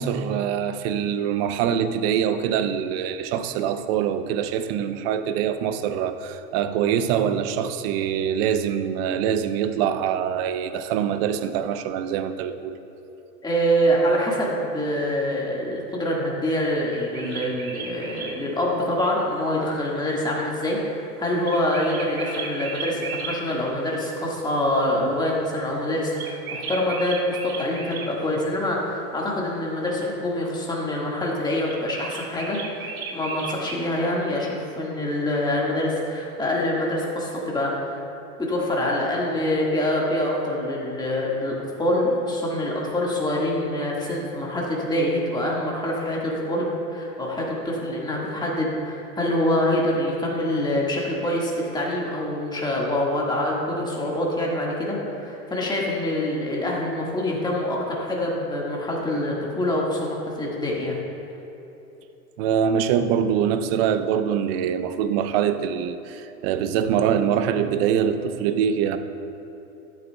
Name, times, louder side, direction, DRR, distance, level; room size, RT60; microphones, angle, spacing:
voice 1, 0.0-12.8 62.4-69.0, right 8 dB, 40° right, 10 dB, 0.6 m, -24 dB
voice 2, 13.4-38.0 38.4-61.0, left 1 dB, 10° left, -3 dB, 1.7 m, -25 dB
sound 1, 16.9-18.3 21.4-23.4 26.2-28.1 31.7-33.8, right 5 dB, 70° right, 1.4 m, -35 dB
13.0 x 8.1 x 2.2 m, 2.9 s
hypercardioid pair, 105°, 45 cm